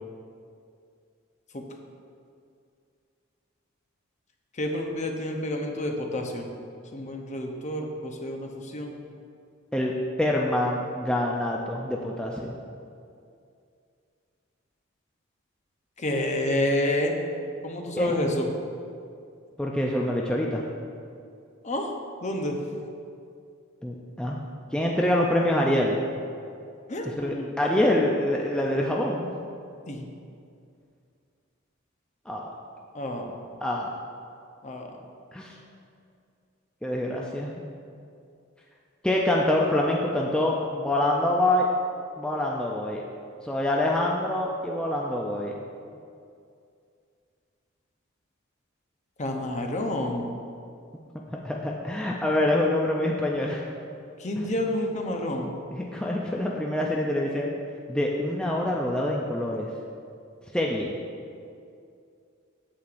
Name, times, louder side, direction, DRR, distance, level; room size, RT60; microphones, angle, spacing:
voice 1, 4.6-6.5 6.9-8.9 16.0-17.1 17.6-18.5 21.6-21.9 22.2-22.6 26.9-27.5 29.9-30.1 32.9-33.3 34.6-34.9 49.2-50.3 54.2-55.5, left 1 dB, 35° left, 2 dB, 0.7 m, -29 dB
voice 2, 10.2-12.5 18.0-18.2 19.6-20.6 23.8-24.4 24.7-26.0 27.0-29.3 32.3-32.5 33.6-33.9 35.3-35.6 36.8-37.6 39.0-41.7 42.2-43.0 43.4-45.5 51.3-53.6 54.4-54.5 55.7-57.5 57.9-59.7 60.5-60.9, left 1 dB, 5° left, -2 dB, 0.4 m, -26 dB
8.5 x 7.7 x 2.5 m, 2.4 s
head